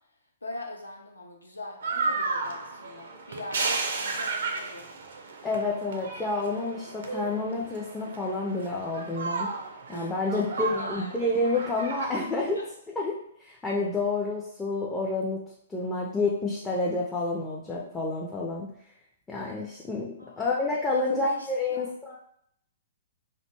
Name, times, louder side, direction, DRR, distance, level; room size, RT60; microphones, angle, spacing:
voice 1, 0.4-4.9 9.9-11.1 12.5-12.7 20.2-21.9, left 2 dB, 80° left, 1 dB, 0.5 m, -41 dB
sound 1, 1.8-12.2, right 4 dB, 60° right, 0.4 m, -33 dB
voice 2, 5.4-9.5 9.9-12.6 13.0-13.1 13.4-15.4 15.7-18.7 19.3-22.2, left 2 dB, 10° left, -4 dB, 0.4 m, -29 dB
2.5 x 2.2 x 2.8 m, 0.69 s
figure-of-eight pair, 115°, 0 cm